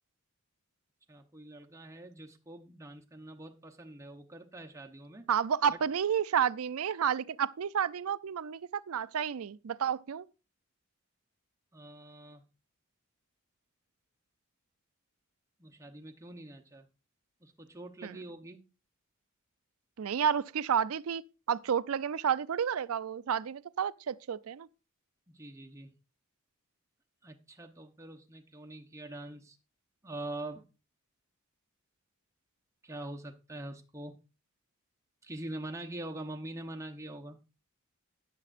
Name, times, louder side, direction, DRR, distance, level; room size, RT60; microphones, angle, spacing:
voice 1, 1.1-5.3 5.7-5.8 11.7-12.4 15.6-16.9 17.4-18.6 25.3-25.9 27.2-29.6 30.0-30.6 32.8-34.1 35.2-37.4, right 1 dB, 15° right, 0.8 m, -44 dB
voice 2, 5.3-10.3 18.0-18.2 20.0-21.2 21.5-24.7, right 8 dB, 80° right, 0.4 m, -31 dB
13.0 x 9.9 x 2.5 m
head